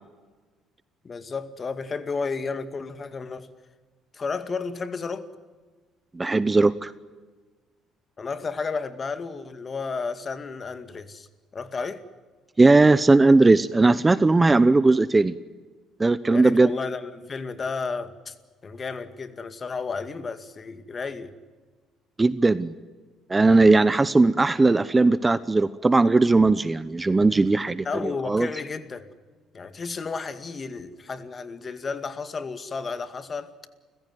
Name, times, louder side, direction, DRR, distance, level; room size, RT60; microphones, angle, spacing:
voice 1, 1.0-3.5 4.1-5.3 8.2-11.3 11.5-12.0 16.3-18.3 18.6-21.3 27.8-29.1 29.5-33.5, left 4 dB, 35° left, 2.1 m, -32 dB
voice 2, 6.1-6.9 12.6-15.3 16.0-16.7 22.2-22.7 23.3-28.5, right 3 dB, 20° right, 0.8 m, -18 dB
30.0 x 16.0 x 9.5 m
cardioid pair, 90°, 0 cm